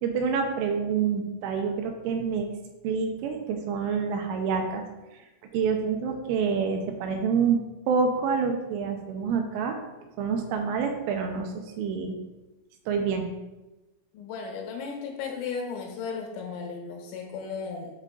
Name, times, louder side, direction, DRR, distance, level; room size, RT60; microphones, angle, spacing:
voice 1, 0.0-2.5 2.8-4.8 5.5-7.6 7.9-9.8 10.2-12.2 12.9-13.3, right 6 dB, 80° right, 4 dB, 3.1 m, -27 dB
voice 2, 14.1-17.9, left 5 dB, 80° left, 0 dB, 3.9 m, -35 dB
7.6 x 4.9 x 3.8 m, 1.0 s
omnidirectional pair, 5.9 m